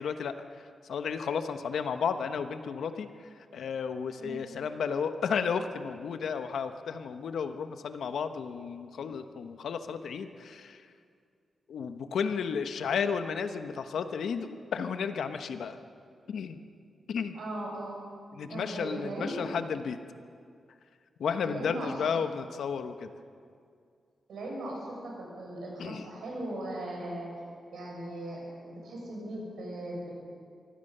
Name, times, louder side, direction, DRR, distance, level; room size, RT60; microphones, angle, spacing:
voice 1, 0.0-10.9 11.7-15.8 16.3-16.6 17.1-17.3 18.3-20.0 21.2-23.1 25.8-26.1, left 6 dB, 75° left, 8 dB, 1.1 m, -33 dB
voice 2, 17.3-17.9 18.4-19.5 21.4-21.9 24.3-27.3 27.7-30.1, right 1 dB, 85° right, -2 dB, 6.7 m, -38 dB
24.0 x 16.0 x 6.8 m, 2.3 s
wide cardioid pair, 180°, 0 cm